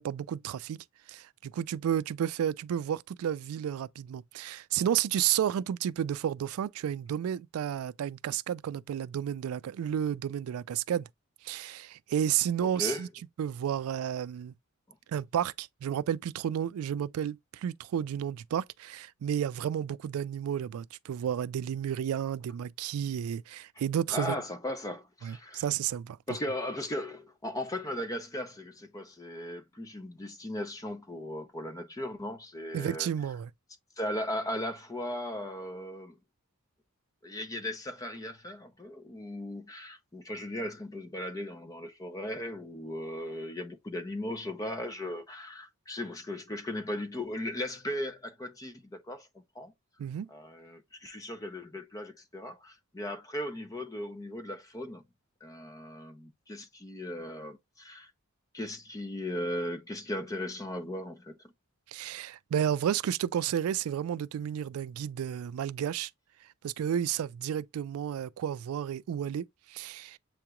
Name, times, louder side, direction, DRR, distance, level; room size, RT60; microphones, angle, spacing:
voice 1, 0.0-11.1 11.4-13.1 13.4-14.5 15.1-24.4 25.2-26.2 32.7-33.5 50.0-50.3 61.9-66.1 66.6-70.2, right 9 dB, 85° right, 0.3 m, -32 dB
voice 2, 12.6-13.0 24.1-25.6 26.3-33.1 34.0-36.2 37.2-49.3 49.5-49.7 50.3-55.0 55.4-58.1 58.5-61.3, left 1 dB, 15° left, 0.5 m, -37 dB
7.6 x 2.9 x 2.3 m
head